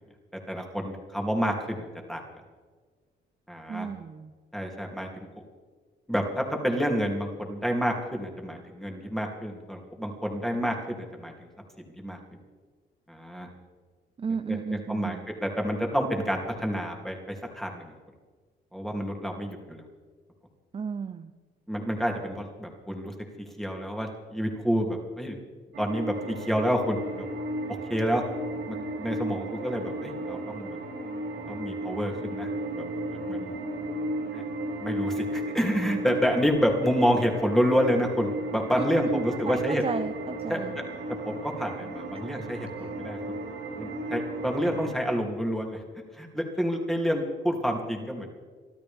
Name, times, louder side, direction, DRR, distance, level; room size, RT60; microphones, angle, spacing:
voice 1, 0.5-2.2 3.5-3.9 4.5-5.1 6.1-10.7 11.1-11.3 12.0-12.2 13.1-13.5 14.5-14.6 14.9-17.9 18.7-19.8 21.7-23.1 23.6-25.4 25.8-27.3 27.7-28.2 28.7-30.8 31.5-32.5 32.7-32.8 33.1-33.5 34.3-34.4 34.8-39.8 40.5-40.6 41.2-43.2 43.8-45.8 46.2-48.3, equal, ahead, 1 dB, 2.8 m, -28 dB
voice 2, 3.7-4.3 14.2-15.3 20.7-21.3 38.7-40.8 42.1-42.2 42.8-43.0, right 6 dB, 30° right, 9 dB, 0.6 m, -34 dB
sound 1, 25.7-44.9, right 1 dB, 85° right, 5.6 m, -34 dB
24.5 x 12.5 x 3.6 m, 1.5 s
cardioid pair, 90°, 20 cm